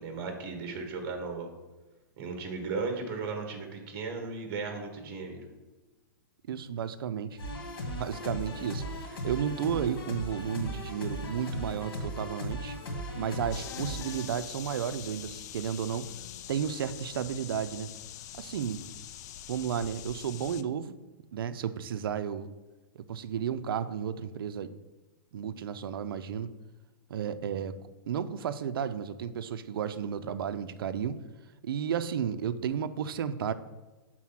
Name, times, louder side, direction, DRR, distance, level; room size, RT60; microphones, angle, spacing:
voice 1, 0.0-1.5 2.2-5.4, right 4 dB, 40° right, 4 dB, 1.5 m, -36 dB
voice 2, 6.5-7.4 7.9-12.8 13.2-16.1 16.5-17.9 18.4-18.9 19.5-21.0 21.3-22.5 22.9-24.7 25.3-26.5 27.1-27.7 28.1-31.2 31.6-33.5, right 8 dB, 80° right, 13 dB, 0.5 m, -33 dB
sound 1, 7.4-14.2, equal, 85° left, 1.8 m, -37 dB
sound 2, 13.5-20.6, left 12 dB, 50° left, 0.4 m, -44 dB
6.1 x 4.0 x 5.9 m, 1.1 s
hypercardioid pair, 150°, 12 cm